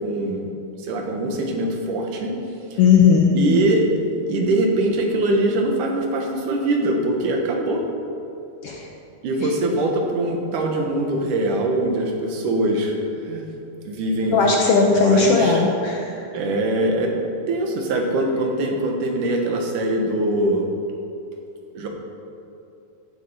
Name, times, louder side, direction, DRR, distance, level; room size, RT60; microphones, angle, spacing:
voice 1, 0.0-0.5 0.8-2.3 2.7-2.8 3.3-3.9 4.3-7.8 9.2-12.9 13.3-13.5 13.8-15.6 16.3-17.1 17.5-20.7 21.7-21.9, right 1 dB, 80° right, 1 dB, 2.9 m, -22 dB
voice 2, 2.8-3.3 8.6-8.8 14.3-16.2, left 5 dB, 65° left, 0 dB, 1.6 m, -17 dB
15.5 x 7.8 x 5.6 m, 2.8 s
omnidirectional pair, 3.7 m